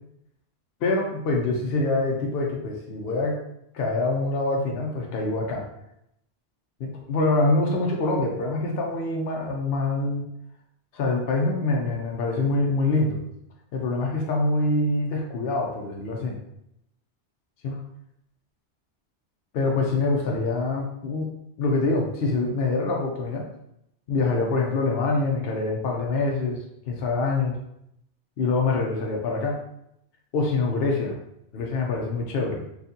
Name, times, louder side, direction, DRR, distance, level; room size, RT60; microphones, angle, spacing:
voice 1, 0.8-3.4 3.7-5.7 6.8-10.3 10.9-13.2 13.7-16.4 17.6-17.8 19.5-23.4 24.1-27.5 28.4-29.6 30.3-31.2 31.5-32.6, left 3 dB, 65° left, 0 dB, 0.8 m, -25 dB
4.0 x 2.4 x 2.6 m, 0.77 s
omnidirectional pair, 1.2 m